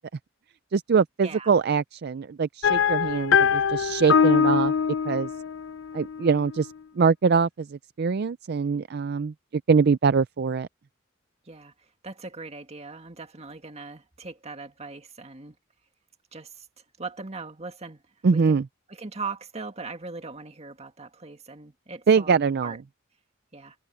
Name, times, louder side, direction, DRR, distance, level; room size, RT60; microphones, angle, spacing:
voice 1, 0.7-4.7 5.1-5.3 5.9-9.3 9.7-10.7 18.2-18.7 22.1-22.8, right 5 dB, 50° right, 0.4 m, -23 dB
voice 2, 1.2-1.5 11.5-15.6 16.3-16.7 17.0-18.0 18.5-18.6 18.9-22.8 23.5-23.8, right 4 dB, 30° right, 1.9 m, -39 dB
sound 1, 2.6-6.5, left 7 dB, 65° left, 0.5 m, -23 dB
head